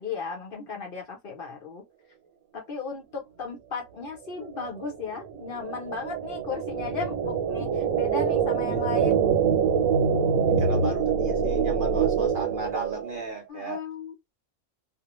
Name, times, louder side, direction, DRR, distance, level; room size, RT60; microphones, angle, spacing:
voice 1, 0.0-1.8 2.5-9.2 13.5-14.1, left 5 dB, 50° left, 0.9 m, -36 dB
sound 1, 4.4-13.3, right 6 dB, 85° right, 1.1 m, -25 dB
voice 2, 10.3-13.8, right 3 dB, 60° right, 0.6 m, -35 dB
2.4 x 2.1 x 2.9 m
omnidirectional pair, 1.4 m